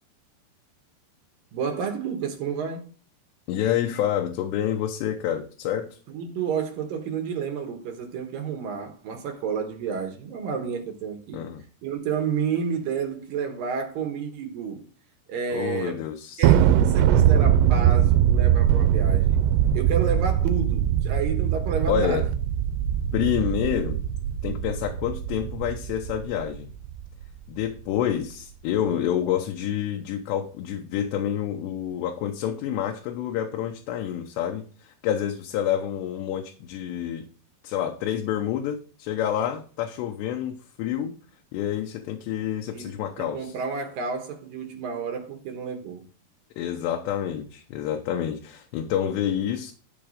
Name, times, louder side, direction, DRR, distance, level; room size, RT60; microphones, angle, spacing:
voice 1, 1.5-2.8 6.1-11.4 11.8-14.8 15.3-16.0 16.4-19.4 19.7-22.3 42.7-46.0, right 6 dB, 65° right, 2.5 m, -30 dB
voice 2, 3.5-6.0 11.3-11.6 15.5-16.5 21.9-22.3 23.1-24.0 24.4-26.7 27.5-37.3 37.6-41.2 41.5-43.6 46.6-49.7, left 10 dB, 80° left, 3.0 m, -28 dB
Thunder, 16.4-27.1, right 10 dB, 90° right, 2.9 m, -21 dB
13.0 x 4.5 x 5.1 m
omnidirectional pair, 5.0 m